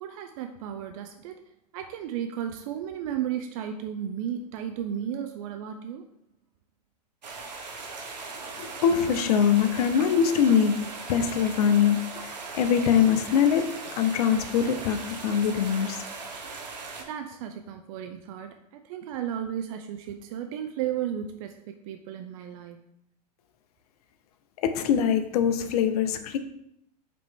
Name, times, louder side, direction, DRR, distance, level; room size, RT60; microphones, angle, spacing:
voice 1, 0.0-1.4 1.7-6.1 17.1-18.6 18.8-22.8, right 9 dB, 55° right, 6 dB, 0.4 m, -34 dB
sound 1, 7.2-17.0, right 4 dB, 90° right, 0.8 m, -39 dB
voice 2, 8.6-12.2 12.5-16.0 24.6-26.4, left 8 dB, 65° left, 9 dB, 0.6 m, -23 dB
5.0 x 3.0 x 3.4 m, 0.75 s
hypercardioid pair, 105°, 21 cm